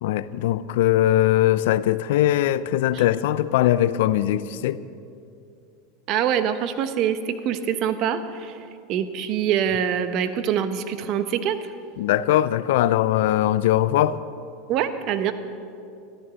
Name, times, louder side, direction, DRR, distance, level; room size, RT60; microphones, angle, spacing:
voice 1, 0.0-4.8 12.0-14.2, left 13 dB, 75° left, 0.5 m, -21 dB
voice 2, 6.1-8.6 8.9-11.6 14.7-15.3, right 9 dB, 50° right, 1.1 m, -24 dB
13.5 x 13.5 x 6.4 m
supercardioid pair, 115°, 0 cm